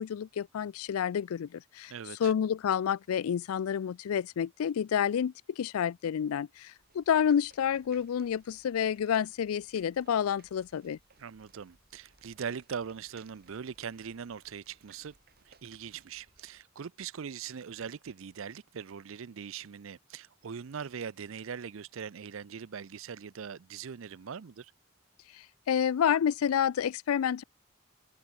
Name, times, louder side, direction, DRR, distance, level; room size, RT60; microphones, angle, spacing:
voice 1, 0.0-1.9 2.2-11.0 25.7-27.4, left 8 dB, 85° left, 0.4 m, -29 dB
voice 2, 1.9-2.3 11.2-15.1 15.5-24.7, right 7 dB, 70° right, 0.5 m, -41 dB
sound 1, 6.8-16.6, right 4 dB, 45° right, 3.2 m, -64 dB
open air
head